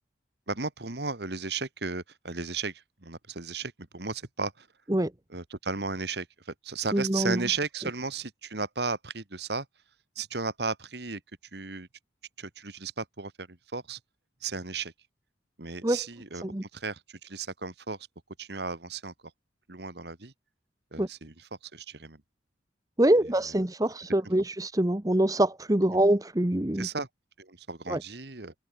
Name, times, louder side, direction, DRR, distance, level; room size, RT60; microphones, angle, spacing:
voice 1, 0.5-4.7 5.3-9.7 10.2-11.2 11.5-11.9 12.4-14.0 14.4-14.9 15.6-16.4 16.7-18.0 18.4-19.1 19.7-20.3 20.9-21.3 21.7-22.2 26.8-27.1 27.4-28.5, right 4 dB, 60° right, 1.8 m, -35 dB
voice 2, 6.9-7.4 15.8-16.0 16.4-16.6 21.0-21.1 23.0-26.9 27.9-28.0, right 1 dB, 20° right, 1.0 m, -24 dB
head